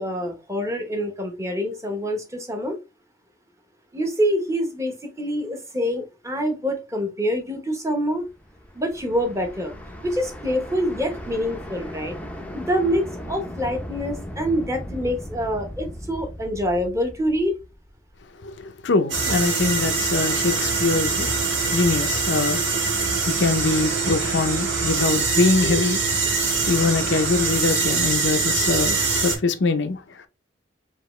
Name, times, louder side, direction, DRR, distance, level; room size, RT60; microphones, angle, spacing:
voice 1, 0.0-2.8 3.9-8.2 8.7-9.7 10.0-12.2 12.5-17.5, equal, 15° right, 1.0 m, -26 dB
sound 1, 8.3-18.3, equal, 5° left, 0.6 m, -37 dB
voice 2, 18.4-30.3, left 3 dB, 70° left, 0.6 m, -24 dB
sound 2, 19.1-29.4, right 4 dB, 70° right, 1.7 m, -23 dB
4.8 x 2.9 x 3.1 m
head